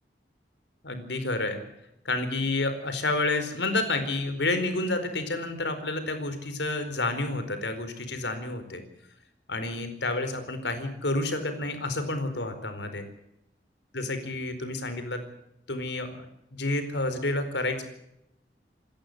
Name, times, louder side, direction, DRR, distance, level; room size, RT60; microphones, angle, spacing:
voice 1, 0.8-1.6 2.0-8.8 9.5-13.0 13.9-15.2 15.7-16.1 16.5-17.8, left 2 dB, 80° left, 9 dB, 4.5 m, -29 dB
27.5 x 14.0 x 7.9 m, 0.80 s
head